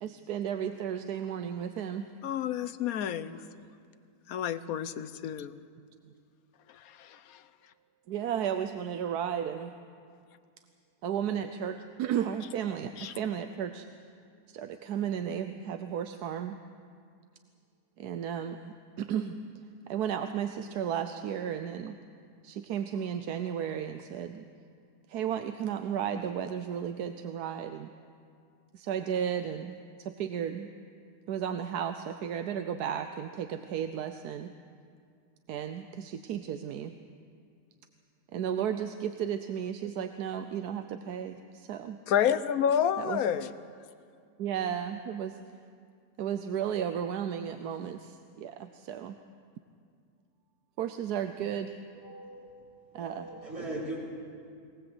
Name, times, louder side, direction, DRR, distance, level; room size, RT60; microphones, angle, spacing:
voice 1, 0.0-2.1 8.1-9.7 11.0-13.8 14.5-16.6 18.0-19.3 19.9-22.0 22.4-24.4 25.1-27.9 28.7-30.7 31.3-34.5 35.5-36.9 38.3-42.0 43.0-43.2 44.4-45.4 46.2-49.2 50.8-51.8 52.9-53.3, right 9 dB, 75° right, 8 dB, 1.3 m, -34 dB
voice 2, 2.2-3.4 4.3-5.6 6.7-7.4 13.0-13.1 42.1-43.5, left 9 dB, 65° left, 13 dB, 1.2 m, -29 dB
voice 3, 51.9-52.5 52.9-54.0, right 1 dB, 60° right, -5 dB, 4.9 m, -39 dB
23.5 x 18.5 x 7.9 m, 2.3 s
omnidirectional pair, 1.7 m